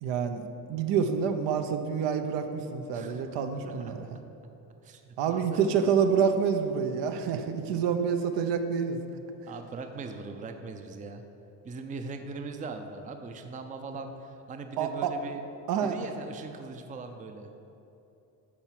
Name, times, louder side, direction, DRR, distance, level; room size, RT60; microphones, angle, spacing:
voice 1, 0.0-4.2 5.2-9.0 14.8-15.1 15.7-15.9, right 6 dB, 80° right, 7 dB, 0.9 m, -27 dB
voice 2, 2.9-3.2 3.6-3.9 4.8-5.6 8.0-8.1 9.5-11.2 11.6-15.4 15.8-17.5, right 4 dB, 20° right, 6 dB, 0.5 m, -40 dB
10.5 x 4.5 x 7.5 m, 2.9 s
cardioid pair, 145°, 42 cm